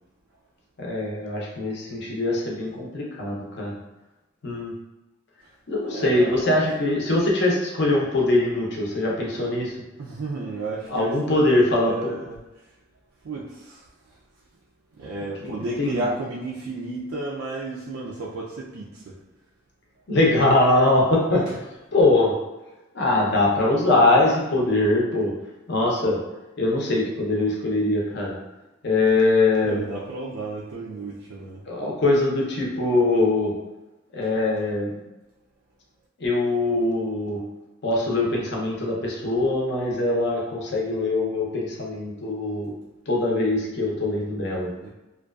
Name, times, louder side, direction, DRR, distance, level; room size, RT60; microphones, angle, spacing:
voice 1, 0.8-3.8 4.4-4.7 5.7-9.7 10.9-12.1 15.4-16.0 20.1-21.4 21.9-22.4 22.9-25.3 25.7-26.2 26.6-28.4 28.8-29.8 31.7-33.5 34.1-34.9 36.2-37.4 37.8-42.7 43.1-44.7, left 2 dB, 55° left, -2 dB, 0.6 m, -22 dB
voice 2, 5.8-6.7 10.0-12.4 13.2-13.9 15.0-19.2 21.3-21.4 29.6-31.6 34.2-34.3 44.8-44.9, right 2 dB, 85° right, -5 dB, 0.4 m, -32 dB
2.5 x 2.2 x 2.3 m, 1.0 s
head